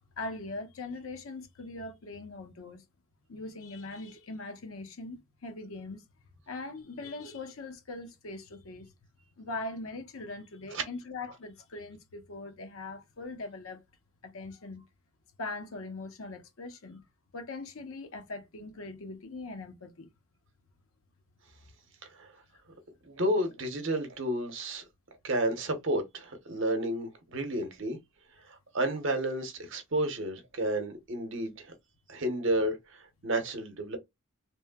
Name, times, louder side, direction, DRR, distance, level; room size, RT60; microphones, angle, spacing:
voice 1, 0.2-2.8 3.3-6.0 6.5-8.9 9.4-13.8 14.2-14.8 15.4-17.0 17.3-20.1, left 2 dB, 70° left, 0.7 m, -41 dB
voice 2, 22.0-22.3 23.0-24.8 25.2-28.0 28.5-31.7 32.1-34.0, right 1 dB, 55° right, 0.8 m, -31 dB
3.1 x 2.1 x 2.2 m
head